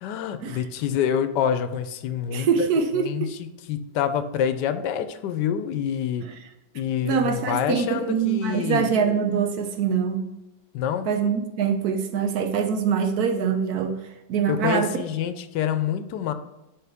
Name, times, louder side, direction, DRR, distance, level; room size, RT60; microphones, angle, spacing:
voice 1, 0.0-2.7 3.0-6.2 6.7-8.9 10.7-11.1 14.5-16.3, left 9 dB, 85° left, 10 dB, 1.2 m, -27 dB
voice 2, 2.3-3.3 6.2-6.3 7.0-10.2 11.1-14.0 14.3-14.9, right 6 dB, 65° right, 7 dB, 1.2 m, -24 dB
10.0 x 4.0 x 3.5 m, 0.96 s
omnidirectional pair, 1.8 m